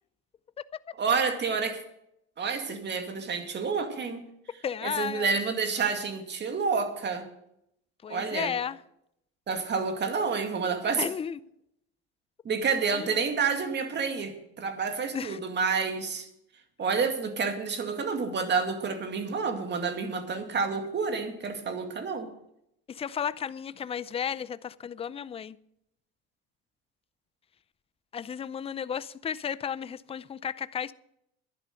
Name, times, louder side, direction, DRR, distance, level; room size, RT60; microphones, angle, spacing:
voice 1, 1.0-1.8 2.4-4.2 4.8-7.2 8.1-8.5 9.5-11.1 12.4-16.3 16.8-22.3, right 5 dB, 35° right, 2.3 m, -29 dB
voice 2, 4.6-5.3 8.0-8.8 11.0-11.4 12.9-13.2 15.1-15.4 22.9-25.6 28.1-30.9, left 8 dB, 20° left, 0.5 m, -33 dB
11.5 x 10.5 x 6.4 m
supercardioid pair, 105°, 31 cm